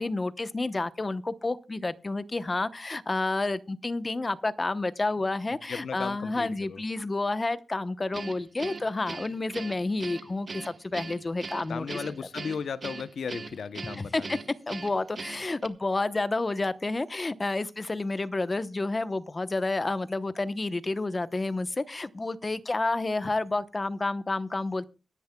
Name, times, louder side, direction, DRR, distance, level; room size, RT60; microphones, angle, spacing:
voice 1, 0.0-12.0 13.9-14.4 14.7-24.9, left 2 dB, 30° left, 0.9 m, -30 dB
voice 2, 5.7-6.8 11.7-14.4, left 6 dB, 75° left, 0.7 m, -36 dB
Guitar, 8.1-15.7, right 4 dB, 50° right, 1.1 m, -40 dB
23.0 x 10.5 x 2.3 m
cardioid pair, 75°, 0 cm